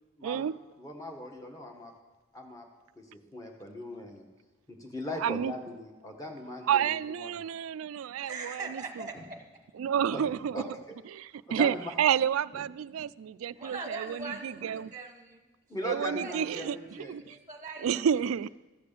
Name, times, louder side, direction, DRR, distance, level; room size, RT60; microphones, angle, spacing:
voice 1, 0.2-0.5 5.2-5.5 6.7-8.8 9.8-10.6 11.1-14.9 15.8-17.3 17.8-18.5, right 8 dB, 90° right, 0.3 m, -30 dB
voice 2, 0.8-1.9 2.3-2.7 3.0-3.1 3.3-4.2 4.7-7.4 9.1-9.2 10.1-10.2 10.5-10.9 11.5-11.9 12.5-12.6 15.7-17.3, left 1 dB, 15° left, 1.5 m, -39 dB
voice 3, 8.2-9.4 13.5-15.4 16.2-18.1, right 3 dB, 15° right, 1.1 m, -42 dB
14.5 x 6.7 x 6.8 m
head